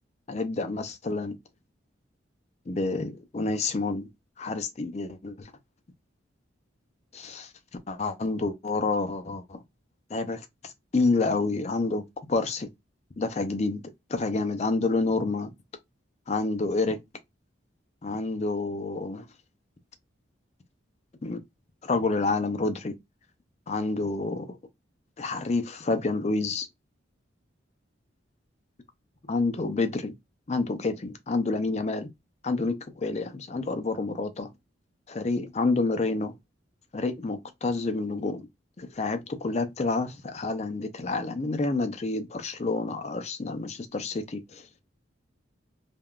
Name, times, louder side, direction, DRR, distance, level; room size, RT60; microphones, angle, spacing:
voice 1, 0.3-1.4 2.7-4.1 4.4-5.5 7.1-7.5 7.9-9.6 10.1-12.7 13.2-13.8 14.1-15.5 16.3-17.0 18.0-19.2 21.2-21.4 21.8-22.9 23.7-24.6 25.2-26.7 29.3-30.2 30.5-32.1 32.4-34.5 35.1-36.3 36.9-38.5 38.8-44.7, left 3 dB, 35° left, 0.4 m, -28 dB
3.4 x 2.3 x 2.3 m
head